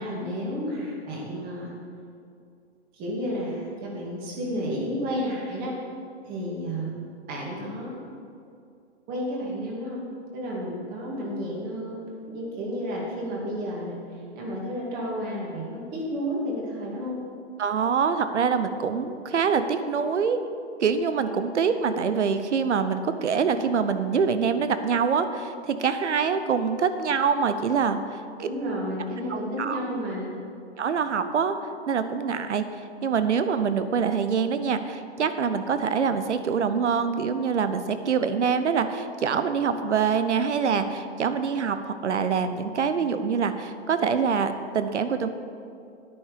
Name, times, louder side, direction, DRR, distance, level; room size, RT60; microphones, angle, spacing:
voice 1, 0.0-1.7 2.9-5.8 6.3-8.0 9.1-10.0 10.3-12.0 12.3-14.0 14.3-17.2 28.4-30.4, equal, 25° right, -3 dB, 2.3 m, -31 dB
voice 2, 17.6-20.4 20.8-28.5 29.3-29.8 30.8-31.5 31.9-32.6 33.0-45.3, right 6 dB, 80° right, 10 dB, 0.9 m, -25 dB
9.6 x 8.9 x 5.1 m, 2.5 s
hypercardioid pair, 140°, 35 cm